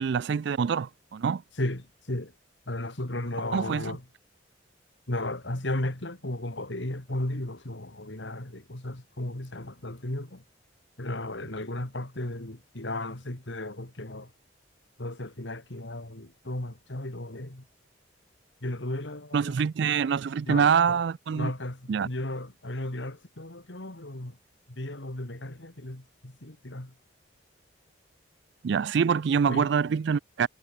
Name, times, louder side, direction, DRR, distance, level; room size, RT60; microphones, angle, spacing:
voice 1, 0.0-1.4 3.5-3.9 19.3-21.5 21.9-22.1 28.6-30.5, right 6 dB, 60° right, 0.3 m, -25 dB
voice 2, 1.6-2.3 2.7-4.0 5.1-10.4 11.0-14.3 15.0-17.6 18.6-19.6 20.5-21.0 21.4-24.4 24.7-27.0 29.5-29.7, left 1 dB, 65° left, 2.4 m, -35 dB
head